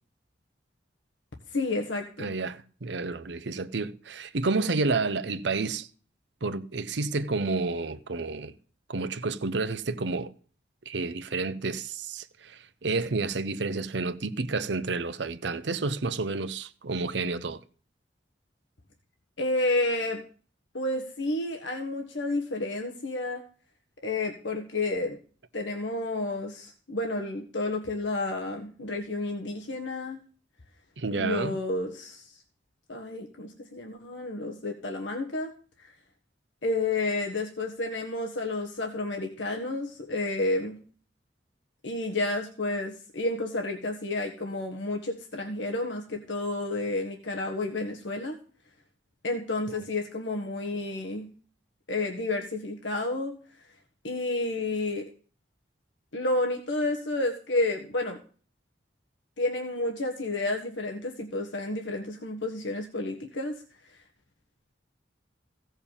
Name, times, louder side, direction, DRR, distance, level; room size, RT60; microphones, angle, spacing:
voice 1, 1.5-2.3 19.4-20.2 20.7-23.4 24.0-25.2 25.5-30.2 31.1-32.4 32.9-35.5 36.6-40.8 41.8-48.4 49.2-51.3 51.9-53.3 54.0-55.1 56.1-58.2 59.4-63.5, left 2 dB, 85° left, 1.4 m, -30 dB
voice 2, 2.2-5.9 6.4-8.5 8.9-10.3 10.9-17.6 31.0-31.6 49.7-49.8, right 3 dB, 75° right, 0.8 m, -30 dB
16.0 x 5.6 x 7.3 m
head